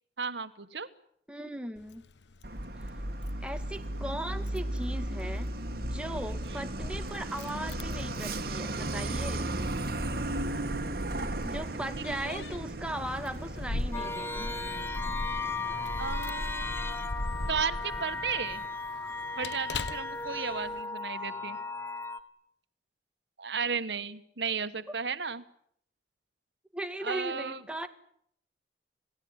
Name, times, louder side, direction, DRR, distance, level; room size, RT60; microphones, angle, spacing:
voice 1, 0.2-0.9 6.5-6.7 12.0-12.4 16.0-17.0 17.5-18.6 19.4-21.6 23.4-25.4 27.0-27.6, right 6 dB, 80° right, 12 dB, 1.5 m, -34 dB
voice 2, 1.3-2.0 3.4-9.6 11.4-14.5 26.7-27.9, right 1 dB, 5° right, 6 dB, 2.2 m, -38 dB
Keys jangling, 1.8-20.8, left 2 dB, 85° left, 1.0 m, -41 dB
Truck, 2.4-18.7, right 1 dB, 60° right, 2.4 m, -36 dB
sound 1, 13.9-22.2, left 3 dB, 15° left, 1.5 m, -36 dB
28.5 x 18.0 x 9.9 m, 0.69 s
head